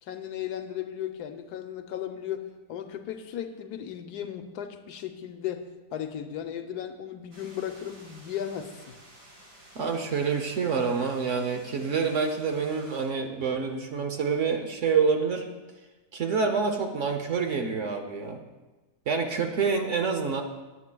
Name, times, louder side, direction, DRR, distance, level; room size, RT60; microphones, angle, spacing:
voice 1, 0.0-8.9, left 10 dB, 75° left, 7 dB, 1.2 m, -36 dB
sound 1, 7.3-13.1, right 1 dB, 80° right, 3.1 m, -53 dB
voice 2, 9.8-15.4 16.1-18.4 19.1-20.4, right 5 dB, 55° right, 5 dB, 0.9 m, -27 dB
19.5 x 8.3 x 2.3 m, 1.2 s
omnidirectional pair, 1.8 m